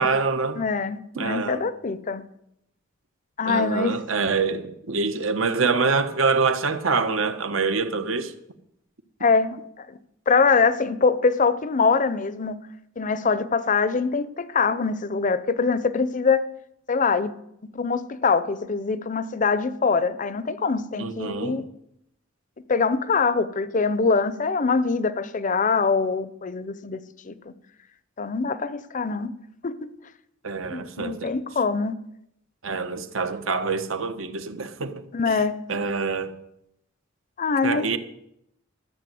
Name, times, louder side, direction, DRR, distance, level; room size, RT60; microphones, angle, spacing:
voice 1, 0.0-0.6 1.1-1.6 3.5-8.3 21.0-21.6 30.4-31.3 32.6-35.4 35.7-36.3 37.6-38.0, right 4 dB, 75° right, 1.1 m, -25 dB
voice 2, 0.6-2.2 3.4-4.0 9.2-10.0 10.3-12.6 13.0-16.5 16.9-17.3 17.7-21.6 22.7-27.3 28.2-29.3 29.6-29.9 30.7-32.0 35.1-35.6 37.4-38.0, left 4 dB, 40° left, 0.6 m, -23 dB
13.5 x 7.5 x 7.7 m
head